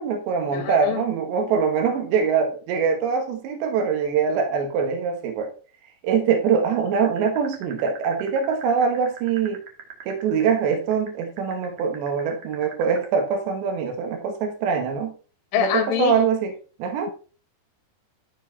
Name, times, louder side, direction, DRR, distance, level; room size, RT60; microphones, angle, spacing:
voice 1, 0.0-5.5 6.0-9.6 10.1-15.1 15.6-16.5 16.8-17.1, right 6 dB, 80° right, 3.5 m, -23 dB
voice 2, 0.5-1.0 15.5-16.2, left 9 dB, 80° left, 2.6 m, -24 dB
sound 1, 6.9-13.1, right 8 dB, 55° right, 1.8 m, -39 dB
12.5 x 4.7 x 3.9 m
omnidirectional pair, 5.1 m